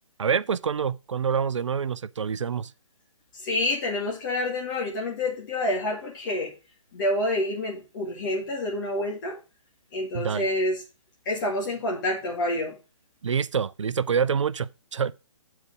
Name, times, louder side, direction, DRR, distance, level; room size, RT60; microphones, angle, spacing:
voice 1, 0.2-2.7 10.1-10.5 13.2-15.1, right 6 dB, 70° right, 0.4 m, -26 dB
voice 2, 3.3-6.5 6.9-9.4 9.9-10.8 11.3-12.8, left 1 dB, 40° left, 2.0 m, -28 dB
7.9 x 4.6 x 4.8 m
figure-of-eight pair, 135°, 16 cm